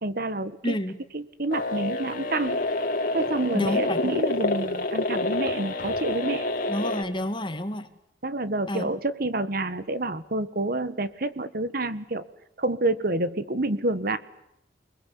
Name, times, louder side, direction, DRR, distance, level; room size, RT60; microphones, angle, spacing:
voice 1, 0.0-0.8 1.1-2.6 3.1-6.5 8.2-12.2 12.6-14.2, right 2 dB, 55° right, 13 dB, 1.6 m, -28 dB
voice 2, 0.6-1.0 3.5-4.0 6.7-7.9 8.7-8.9, left 1 dB, 25° left, 9 dB, 2.2 m, -29 dB
sound 1, 1.5-7.0, left 2 dB, 50° left, 3.0 m, -28 dB
29.5 x 21.0 x 8.4 m, 0.82 s
head